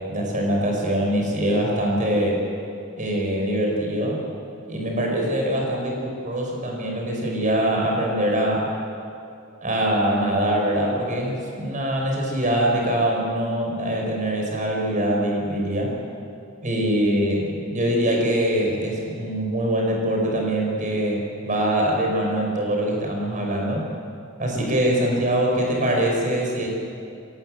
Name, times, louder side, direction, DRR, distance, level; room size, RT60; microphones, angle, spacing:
voice 1, 0.0-2.4 3.0-4.2 4.6-8.6 9.6-15.9 16.6-23.9 24.4-26.7, right 1 dB, 35° right, -1 dB, 5.5 m, -23 dB
25.0 x 18.0 x 7.9 m, 2.6 s
head